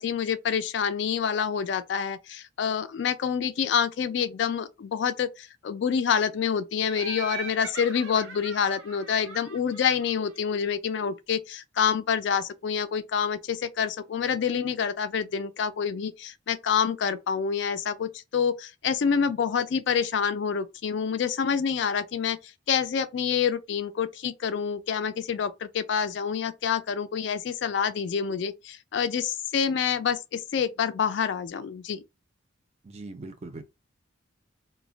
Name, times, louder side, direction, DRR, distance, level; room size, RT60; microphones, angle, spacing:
voice 1, 0.0-22.4 22.7-32.0, left 7 dB, 60° left, 0.3 m, -27 dB
Laughter, 6.9-10.5, right 4 dB, 85° right, 0.7 m, -41 dB
voice 2, 32.8-33.6, right 2 dB, 35° right, 0.4 m, -40 dB
2.2 x 2.0 x 3.7 m
head